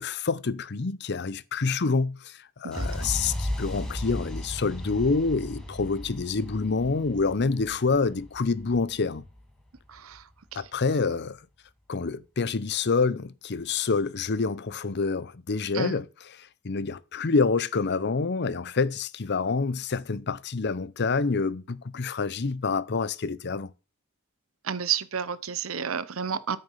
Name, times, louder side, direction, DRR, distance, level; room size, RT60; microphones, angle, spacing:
voice 1, 0.0-9.3 10.5-11.4 11.9-16.1 16.4-23.7, left 4 dB, 50° left, 0.7 m, -27 dB
voice 2, 2.6-3.1 9.9-10.6 15.7-16.0 24.6-26.6, right 7 dB, 70° right, 0.8 m, -31 dB
sound 1, 2.7-10.6, left 1 dB, 5° left, 2.5 m, -36 dB
13.0 x 6.6 x 5.6 m
head